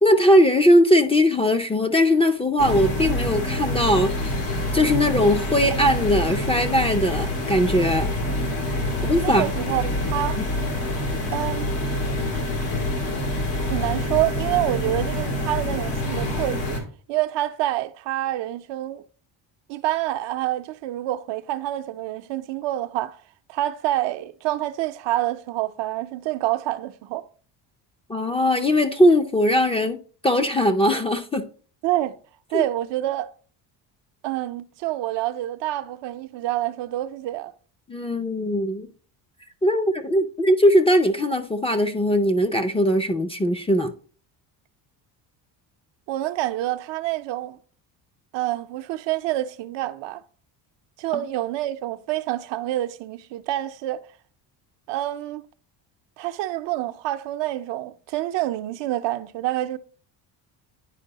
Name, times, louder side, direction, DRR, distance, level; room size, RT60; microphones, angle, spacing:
voice 1, 0.0-4.3 4.7-8.1 9.1-9.5 10.4-10.5 28.1-31.5 32.5-32.6 37.9-38.9 39.6-43.9 51.1-51.2, equal, 15° left, 0.4 m, -20 dB
sound 1, 2.6-16.8, left 1 dB, 85° left, 2.1 m, -26 dB
voice 2, 9.2-10.4 11.3-11.7 13.7-16.8 17.1-19.0 19.7-23.2 23.5-27.2 31.8-32.1 32.5-33.3 34.2-37.5 46.1-47.6 48.3-50.2 51.0-54.1 54.9-55.4 56.2-59.8, right 15 dB, 75° right, 0.6 m, -27 dB
9.8 x 4.5 x 2.8 m
cardioid pair, 110°, 44 cm